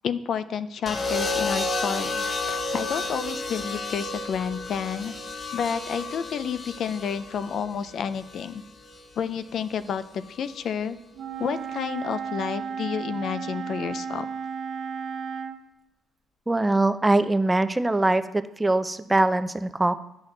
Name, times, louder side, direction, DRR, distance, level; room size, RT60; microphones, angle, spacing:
voice 1, 0.0-5.1 5.5-8.6 9.2-11.0 11.4-14.3, left 7 dB, 65° left, 13 dB, 0.4 m, -30 dB
sound 1, 0.9-9.0 10.2-10.6, left 2 dB, 40° left, 0.9 m, -32 dB
Wind instrument woodwind instrument, 11.1-15.6, right 6 dB, 70° right, 0.7 m, -33 dB
voice 2, 16.5-18.2 18.6-19.9, right 2 dB, 15° right, 12 dB, 0.5 m, -22 dB
9.7 x 6.3 x 3.8 m, 0.89 s
cardioid pair, 90°, 0 cm